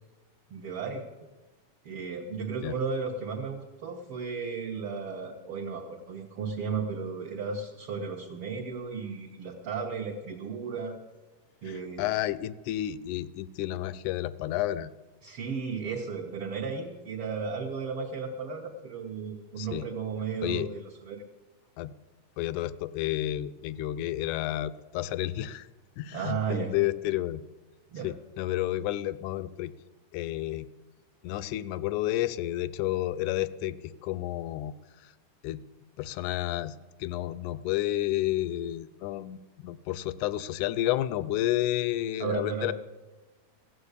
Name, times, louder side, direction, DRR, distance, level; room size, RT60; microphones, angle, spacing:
voice 1, 0.5-1.0 1.8-11.0 11.6-12.0 15.2-21.2 26.1-26.7 27.9-28.1 42.2-42.7, right 5 dB, 60° right, 0 dB, 1.6 m, -34 dB
voice 2, 11.7-14.9 19.6-19.9 20.4-20.7 21.8-22.0 22.4-25.7 26.0-27.4 28.0-29.7 30.1-30.7 31.2-35.1 35.4-35.6 36.0-42.7, left 14 dB, 80° left, 16 dB, 1.9 m, -31 dB
15.5 x 7.7 x 8.2 m, 1.2 s
omnidirectional pair, 3.6 m